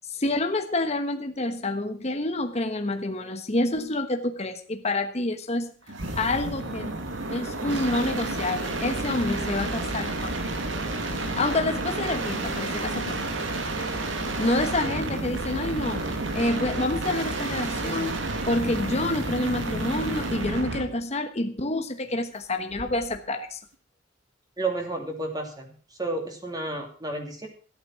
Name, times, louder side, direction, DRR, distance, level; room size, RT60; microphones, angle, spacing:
voice 1, 0.1-5.7 6.2-6.9 7.3-10.4 11.1-13.2 14.4-16.1 16.3-23.6, left 2 dB, 35° left, 6 dB, 1.2 m, -28 dB
sound 1, 5.9-20.9 22.7-23.2, right 2 dB, 90° right, 2.2 m, -30 dB
voice 2, 24.6-25.7 26.0-27.5, right 2 dB, 20° right, 2 dB, 2.9 m, -31 dB
14.5 x 8.9 x 6.0 m, 0.42 s
head